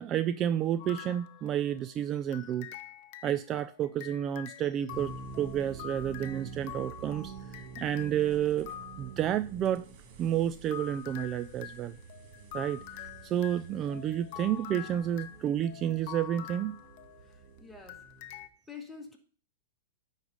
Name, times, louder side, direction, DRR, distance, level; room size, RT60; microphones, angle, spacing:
voice 1, 0.0-2.8 3.2-8.7 9.0-9.9 10.2-12.0 12.5-16.7, right 10 dB, 30° right, 0.3 m, -31 dB
sound 1, 0.8-1.9 2.3-9.2 10.3-17.5 17.9-18.5, left 11 dB, 50° left, 0.7 m, -46 dB
sound 2, 4.9-18.5, right 5 dB, 45° right, 1.3 m, -48 dB
voice 2, 17.3-18.0 18.7-19.2, left 5 dB, 5° left, 1.5 m, -47 dB
9.9 x 4.1 x 4.8 m
hypercardioid pair, 135°, 0 cm